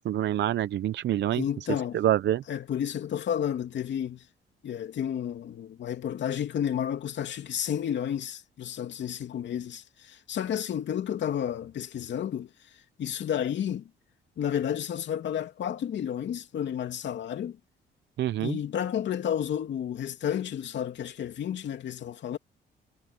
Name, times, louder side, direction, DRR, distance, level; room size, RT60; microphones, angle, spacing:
voice 1, 0.0-1.4 1.9-2.4 18.2-18.6, right 12 dB, 65° right, 0.7 m, -26 dB
voice 2, 1.3-2.0 2.5-4.3 4.6-13.9 14.4-17.6 18.4-22.4, left 9 dB, 65° left, 2.7 m, -31 dB
cardioid pair, 90°, 20 cm